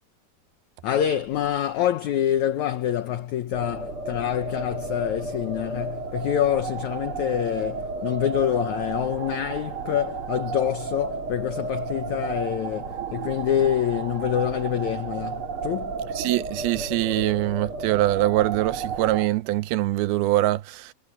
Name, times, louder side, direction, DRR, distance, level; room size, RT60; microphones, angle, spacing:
voice 1, 0.8-16.0, left 10 dB, 70° left, 1.8 m, -26 dB
sound 1, 3.5-19.3, right 4 dB, 35° right, 3.5 m, -33 dB
voice 2, 13.0-13.3 16.2-20.9, right 16 dB, 80° right, 2.6 m, -24 dB
omnidirectional pair, 4.4 m